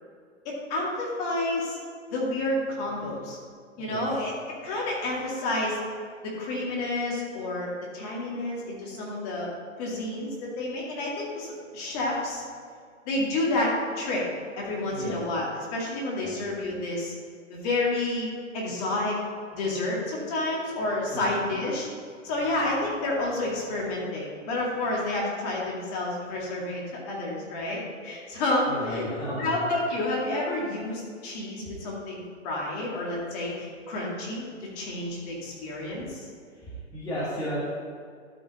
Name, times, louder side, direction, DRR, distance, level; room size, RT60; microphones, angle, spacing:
voice 1, 0.4-1.8 2.1-3.4 3.8-5.8 6.2-9.5 9.8-12.4 13.1-14.2 14.6-17.1 17.5-19.2 19.5-21.9 22.2-36.3, left 2 dB, 30° left, -3 dB, 2.2 m, -30 dB
voice 2, 28.7-29.5 31.6-31.7 36.9-37.7, equal, 10° left, -9 dB, 1.7 m, -33 dB
12.0 x 5.5 x 4.1 m, 2.1 s
hypercardioid pair, 150°, 38 cm